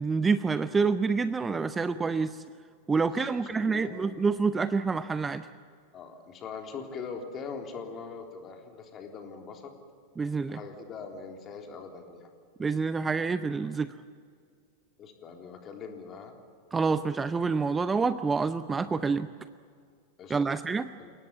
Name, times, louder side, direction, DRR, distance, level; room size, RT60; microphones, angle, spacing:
voice 1, 0.0-2.4 2.9-5.5 10.2-10.6 12.6-13.9 16.7-19.3 20.3-20.9, right 4 dB, 15° right, 13 dB, 0.6 m, -27 dB
voice 2, 3.0-4.0 5.9-9.7 10.5-12.3 15.0-16.3 20.2-20.6 21.0-21.1, left 5 dB, 30° left, 3 dB, 3.7 m, -42 dB
29.5 x 18.0 x 8.5 m, 2.2 s
figure-of-eight pair, 90°, 0 cm